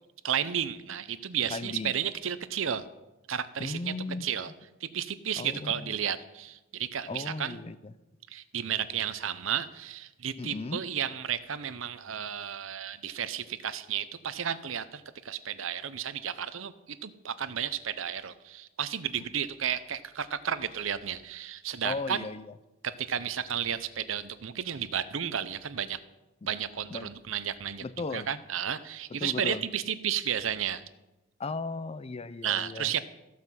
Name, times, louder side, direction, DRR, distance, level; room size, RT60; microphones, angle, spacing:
voice 1, 0.2-2.8 3.3-3.9 4.2-4.5 4.8-7.6 8.3-22.2 22.8-26.0 26.5-27.8 28.1-30.8 32.4-33.0, right 8 dB, 70° right, 14 dB, 0.7 m, -33 dB
voice 2, 1.5-1.9 3.6-4.3 5.4-5.9 7.1-7.9 10.4-10.8 21.8-22.5 26.9-27.1 27.8-28.3 29.1-29.6 31.4-32.9, left 3 dB, 30° left, 15 dB, 0.5 m, -36 dB
14.5 x 5.8 x 7.4 m, 1.0 s
head